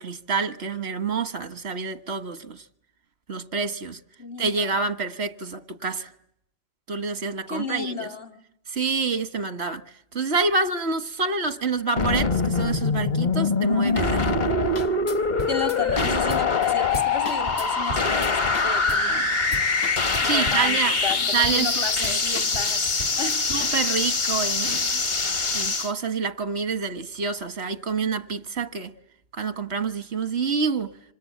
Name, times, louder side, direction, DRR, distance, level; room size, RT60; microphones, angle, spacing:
voice 1, 0.0-2.6 3.3-4.0 4.4-6.1 6.9-8.1 8.7-9.8 10.1-14.4 20.2-21.0 21.3-22.2 23.5-25.0 25.5-28.9 29.3-30.9, right 4 dB, 90° right, 1.7 m, -27 dB
voice 2, 4.2-4.8 7.5-8.3 15.5-19.3 20.2-23.4, left 4 dB, 65° left, 2.7 m, -33 dB
sound 1, 12.0-25.9, left 4 dB, 45° left, 1.3 m, -24 dB
sound 2, 14.4-14.5 14.8-19.1 19.4-20.7 21.1-21.7 22.0-23.7, left 1 dB, 80° left, 1.8 m, -37 dB
26.5 x 26.0 x 8.5 m
omnidirectional pair, 1.1 m